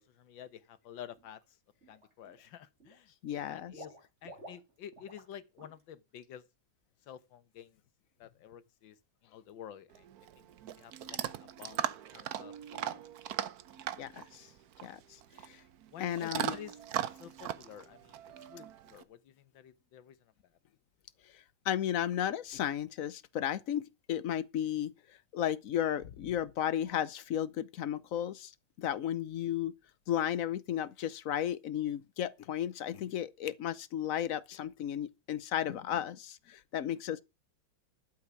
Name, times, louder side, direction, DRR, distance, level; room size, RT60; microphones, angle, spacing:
voice 1, 0.0-1.4 1.9-6.4 7.1-7.8 8.2-9.0 9.2-10.1 10.4-10.5 10.8-11.8 12.1-13.0 15.9-16.8 17.1-18.2 18.5-20.2, left 10 dB, 90° left, 1.8 m, -50 dB
Water / Liquid, 1.2-1.4 1.8-2.5 2.8-5.3 5.6-5.8 6.2-6.3, right 1 dB, 35° right, 3.4 m, -52 dB
voice 2, 3.2-3.7 14.0-14.5 14.8-15.0 15.5-15.6 16.0-16.5 21.6-24.9 25.3-28.5 28.8-29.7 30.1-37.2, left 10 dB, 60° left, 1.0 m, -34 dB
Chewing mastication / Dog, 9.9-19.0, right 10 dB, 60° right, 1.2 m, -39 dB
12.0 x 8.3 x 5.9 m
omnidirectional pair, 2.0 m